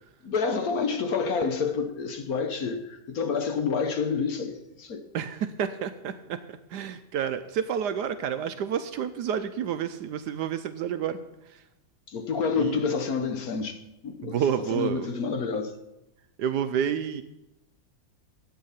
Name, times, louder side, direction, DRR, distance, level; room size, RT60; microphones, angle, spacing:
voice 1, 0.2-5.1 12.1-14.4 14.7-15.7, left 5 dB, 60° left, 1.1 m, -28 dB
voice 2, 5.1-11.2 12.6-12.8 14.2-15.1 16.4-17.2, right 8 dB, 70° right, 1.0 m, -29 dB
12.0 x 8.3 x 5.6 m
omnidirectional pair, 2.1 m